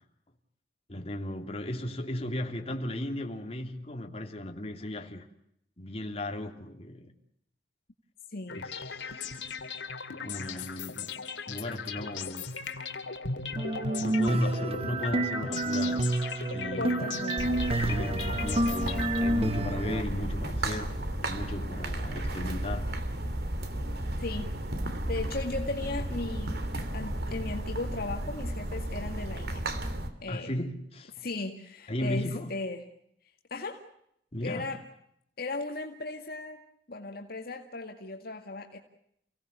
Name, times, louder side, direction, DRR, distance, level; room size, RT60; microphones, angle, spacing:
voice 1, 0.9-5.3 5.8-7.1 8.5-9.4 10.1-11.2 11.5-12.5 14.0-16.1 16.5-17.1 17.4-22.9 30.3-31.3 31.9-32.5 34.3-34.7, left 1 dB, 35° left, 3.0 m, -36 dB
voice 2, 8.3-8.6 16.7-17.5 24.2-24.5 25.1-26.5 26.9-29.6 30.2-30.5 31.2-32.8 33.5-33.8 34.4-34.8 35.4-36.6 36.9-38.8, left 2 dB, 60° left, 2.2 m, -36 dB
weird science, 8.5-19.6, left 5 dB, 90° left, 2.2 m, -37 dB
sound 1, 13.6-20.0, right 2 dB, 35° right, 1.1 m, -29 dB
sound 2, 17.4-30.1, right 1 dB, 60° right, 2.9 m, -33 dB
30.0 x 18.0 x 8.3 m
head